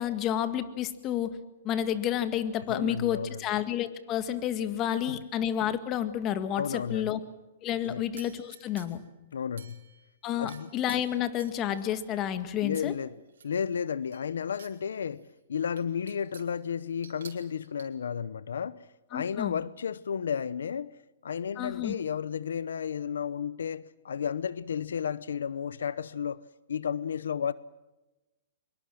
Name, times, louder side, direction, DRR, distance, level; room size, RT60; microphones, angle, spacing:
voice 1, 0.0-1.4 1.6-7.2 7.6-9.0 10.2-12.9 19.1-19.6 21.6-22.0, left 10 dB, 30° left, 1.8 m, -30 dB
voice 2, 2.7-3.4 5.1-5.2 6.5-7.1 7.8-8.0 9.3-9.8 10.4-10.7 12.6-13.1 13.4-18.8 19.1-20.9 21.2-26.4 26.7-27.5, left 7 dB, 90° left, 0.8 m, -33 dB
sound 1, 8.2-9.1 9.6-10.1 10.5-12.0 12.7-12.9 13.3-14.8 15.2-15.3 15.8-16.6 17.0-17.9, right 7 dB, 85° right, 4.8 m, -51 dB
24.5 x 23.0 x 7.7 m
hypercardioid pair, 145°, 0 cm